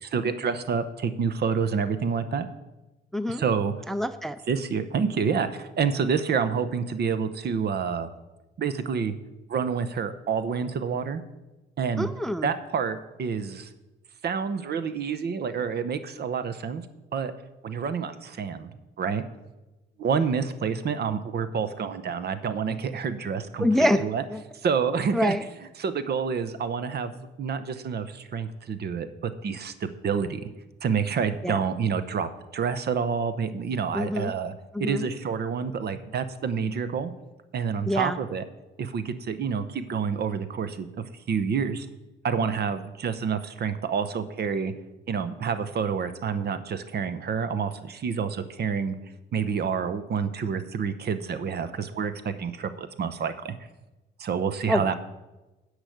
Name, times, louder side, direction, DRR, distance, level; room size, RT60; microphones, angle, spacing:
voice 1, 0.0-2.5 3.3-3.7 4.5-8.1 8.6-9.1 9.5-11.2 11.8-12.1 12.4-13.7 14.2-16.8 17.1-17.3 17.6-18.7 19.0-19.2 20.0-24.2 24.6-25.4 25.8-27.1 27.4-30.5 30.8-34.5 34.8-37.1 37.5-38.4 38.8-40.9 41.3-41.9 42.2-44.7 45.1-49.0 49.3-53.5 54.2-54.9, right 6 dB, 55° right, 12 dB, 0.8 m, -28 dB
voice 2, 3.1-3.4 3.9-4.4 12.0-12.5 23.6-24.0 24.3-24.4 25.1-25.4 31.4-31.6 33.9-34.3 34.7-35.0 37.9-38.2 54.7-54.9, left 1 dB, ahead, 13 dB, 0.4 m, -25 dB
10.0 x 4.9 x 7.9 m, 1.1 s
cardioid pair, 90°, 20 cm